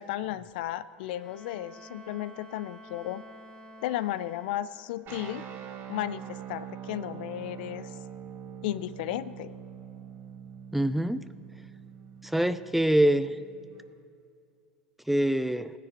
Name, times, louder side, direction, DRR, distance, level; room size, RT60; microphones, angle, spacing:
voice 1, 0.0-3.2 3.8-5.5 5.9-7.9 8.6-9.5, left 13 dB, 65° left, 15 dB, 0.4 m, -34 dB
Bowed string instrument, 0.9-5.0, right 1 dB, 20° left, 2.6 m, -50 dB
sound 1, 5.1-13.9, right 8 dB, 40° right, 1.4 m, -44 dB
voice 2, 10.7-11.3 12.2-13.3 15.1-15.7, right 1 dB, 5° right, 14 dB, 0.4 m, -24 dB
19.0 x 10.0 x 3.0 m, 2.4 s
hypercardioid pair, 85°, 5 cm